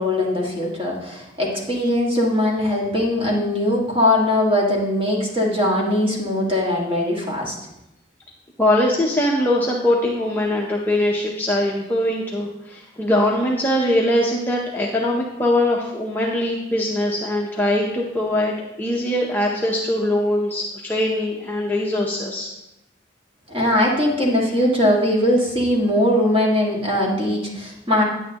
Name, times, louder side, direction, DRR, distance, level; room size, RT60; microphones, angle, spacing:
voice 1, 0.0-7.6 23.5-28.0, left 1 dB, 25° right, -3 dB, 1.7 m, -20 dB
voice 2, 8.6-22.5, left 1 dB, 10° left, -3 dB, 0.6 m, -21 dB
9.4 x 9.0 x 2.9 m, 0.89 s
head